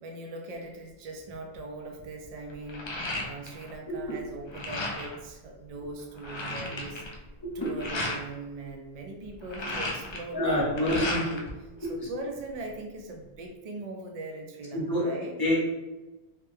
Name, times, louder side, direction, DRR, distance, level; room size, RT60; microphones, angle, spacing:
voice 1, 0.0-2.9 3.2-7.0 7.5-11.4 11.9-15.3, right 2 dB, 50° right, 2 dB, 0.5 m, -40 dB
sound 1, 1.3-1.6 2.0-3.7 4.0-5.2 5.7-5.8 6.0-8.2 9.2-11.5 11.8-12.7, left 2 dB, 50° left, 0.3 m, -35 dB
voice 2, 7.4-7.7 10.3-11.2 11.8-12.1 14.7-15.1 15.4-15.6, left 1 dB, 25° left, -5 dB, 0.8 m, -27 dB
3.2 x 2.2 x 3.3 m, 1.1 s
omnidirectional pair, 1.1 m